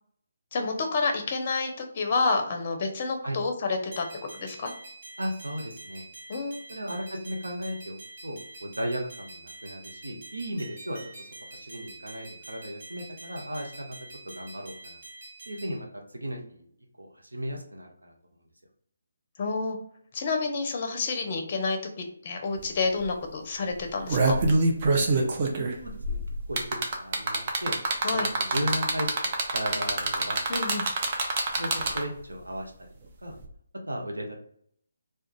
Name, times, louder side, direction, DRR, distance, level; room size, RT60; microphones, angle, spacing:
voice 1, 0.5-4.0 4.3-4.7 6.3-6.6 19.4-19.8 20.1-24.4 28.0-28.3 30.5-30.9, left 4 dB, 40° left, 4 dB, 0.6 m, -29 dB
sound 1, 3.9-15.8, right 2 dB, 55° right, 1.2 m, -46 dB
voice 2, 5.2-6.0 6.7-14.0 14.2-15.0 15.5-16.7 17.0-18.1 25.6-26.2 26.5-26.6 27.0-27.8 28.1-30.5 31.6-32.7 33.2-33.4 33.9-34.4, equal, 90° right, 2 dB, 0.6 m, -35 dB
sound 2, 22.6-22.7 23.0-23.2 23.8-32.2 33.4-33.5, right 3 dB, 35° right, 0.5 m, -26 dB
2.4 x 2.2 x 3.0 m, 0.64 s
figure-of-eight pair, 150°, 0 cm